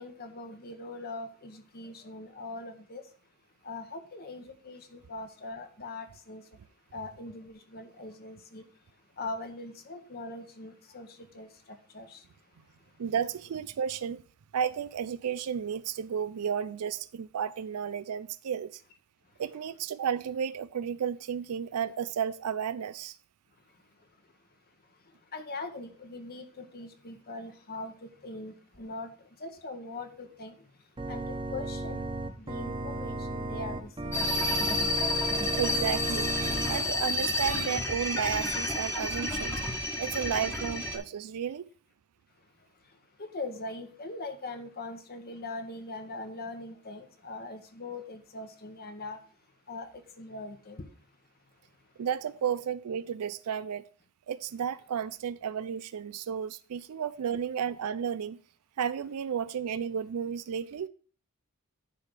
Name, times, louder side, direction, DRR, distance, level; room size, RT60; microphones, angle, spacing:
voice 1, 0.0-3.0 3.6-6.4 6.9-8.6 9.2-11.5 11.9-12.2 25.3-30.5 31.1-32.1 32.4-34.4 43.2-49.2 49.7-50.9, left 2 dB, 45° left, 1.0 m, -41 dB
voice 2, 13.0-14.2 14.5-18.8 19.4-23.2 35.5-36.3 36.7-39.6 40.0-41.7 52.0-53.9 54.3-58.4 58.8-60.9, right 8 dB, 85° right, 0.4 m, -33 dB
Organ, 31.0-36.8, right 2 dB, 25° right, 0.9 m, -34 dB
sound 1, 34.1-41.0, left 2 dB, 10° left, 1.1 m, -30 dB
10.0 x 3.4 x 6.3 m
head